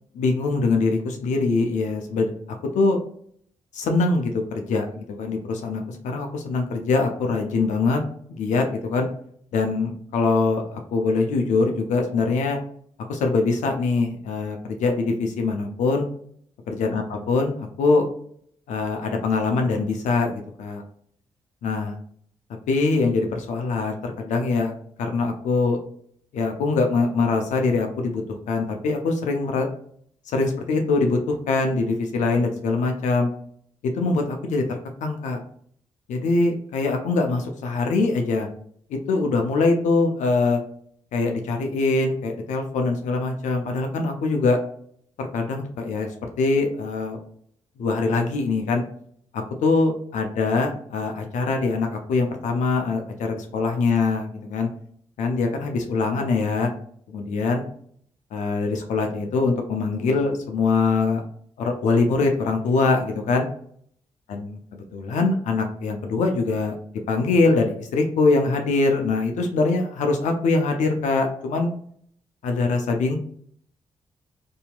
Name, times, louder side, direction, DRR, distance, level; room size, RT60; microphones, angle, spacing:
voice 1, 0.1-2.3 2.7-3.0 3.7-8.0 8.4-9.1 9.5-12.6 13.1-16.1 16.7-18.0 18.7-20.8 21.6-21.9 22.7-24.7 25.0-25.8 26.3-29.7 30.3-33.3 33.9-35.4 36.1-38.5 38.9-40.6 41.1-44.6 45.2-46.1 46.4-47.2 47.8-48.8 49.3-54.7 55.2-56.7 57.1-57.7 58.3-61.2 61.6-63.5 64.3-64.6 64.9-66.7 67.1-71.7 72.4-73.2, left 3 dB, 75° left, 3 dB, 0.5 m, -23 dB
2.8 x 2.7 x 2.2 m, 0.62 s
supercardioid pair, 45°, 13 cm